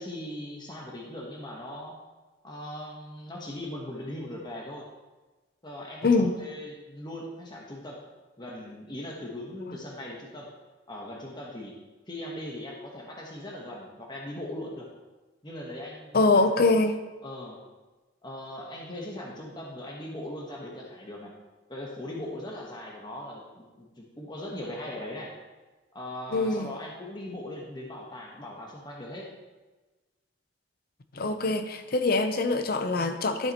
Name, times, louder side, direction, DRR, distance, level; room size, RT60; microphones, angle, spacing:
voice 1, 0.0-2.0 2.4-4.9 5.6-8.0 8.4-10.5 10.9-11.7 12.1-14.9 15.4-16.5 17.2-17.6 18.2-21.3 21.7-25.3 25.9-29.3, left 1 dB, 25° left, -2 dB, 1.2 m, -39 dB
voice 2, 6.0-6.3 16.1-17.0 26.3-26.7 31.1-33.5, left 3 dB, 50° left, 8 dB, 0.7 m, -24 dB
12.0 x 7.6 x 3.0 m, 1.2 s
head